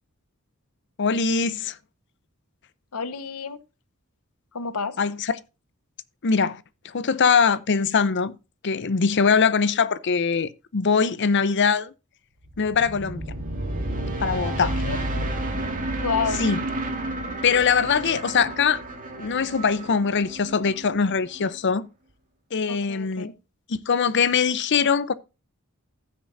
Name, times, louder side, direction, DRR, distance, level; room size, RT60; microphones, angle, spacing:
voice 1, 1.0-1.8 5.0-5.4 6.2-8.3 8.6-11.9 12.6-13.3 14.2-14.7 16.4-16.6 17.4-18.8 19.2-21.9 22.5-23.3 23.7-25.1, left 5 dB, 55° left, 0.6 m, -22 dB
voice 2, 2.9-3.6 4.5-5.0 14.6-15.3 16.0-16.5 22.7-23.3, left 5 dB, 90° left, 1.1 m, -30 dB
sound 1, 12.4-21.6, right 1 dB, 40° right, 2.2 m, -31 dB
15.5 x 6.7 x 2.6 m
head